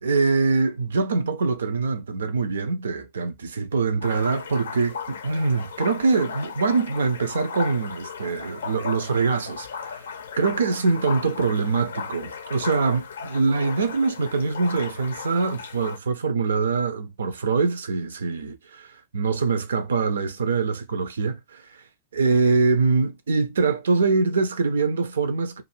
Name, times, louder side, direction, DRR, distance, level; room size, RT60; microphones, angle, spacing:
voice 1, 0.0-10.0 10.4-21.8 22.1-25.6, right 4 dB, 70° right, 0.5 m, -24 dB
sound 1, 4.0-16.0, left 6 dB, 65° left, 0.5 m, -36 dB
2.5 x 2.5 x 3.0 m
figure-of-eight pair, 90°, 0 cm